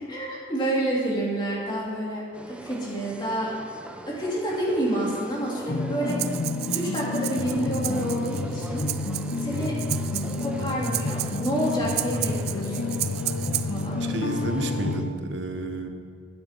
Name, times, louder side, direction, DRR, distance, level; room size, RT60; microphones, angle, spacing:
voice 1, 0.1-3.8 4.1-6.2 6.7-8.9 9.4-9.8 10.4-12.9 13.6-14.0, right 1 dB, 25° left, -5 dB, 3.0 m, -29 dB
sound 1, 2.3-15.0, right 1 dB, 5° right, 0.5 m, -43 dB
sound 2, 5.7-15.1, left 3 dB, 65° left, 0.7 m, -29 dB
Breathing, 6.1-13.9, right 15 dB, 60° right, 0.4 m, -33 dB
voice 2, 14.0-15.9, right 2 dB, 85° right, 5 dB, 1.0 m, -31 dB
13.5 x 9.6 x 4.5 m, 2.1 s
head